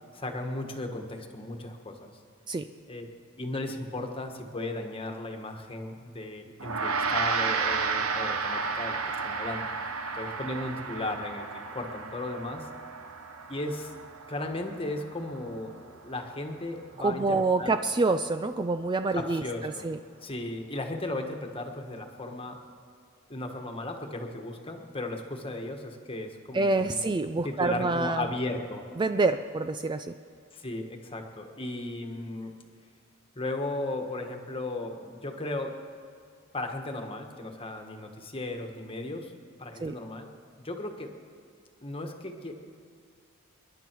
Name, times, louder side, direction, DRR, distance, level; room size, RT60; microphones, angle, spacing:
voice 1, 0.1-2.1 2.9-3.0 3.4-9.7 10.1-11.4 11.7-12.7 13.5-13.9 14.3-15.7 16.0-17.8 19.1-19.9 20.2-22.6 23.3-27.0 27.4-28.8 30.5-32.5 33.3-35.7 36.5-39.3 39.6-40.3 40.6-41.1 41.8-42.5, left 2 dB, 25° left, 4 dB, 1.5 m, -35 dB
Gong, 6.6-16.2, right 5 dB, 75° right, 1.0 m, -33 dB
voice 2, 17.0-20.0 26.5-28.3 29.0-30.1 39.8-40.0, right 3 dB, 20° right, 9 dB, 0.3 m, -27 dB
28.0 x 11.0 x 4.6 m, 2.3 s
head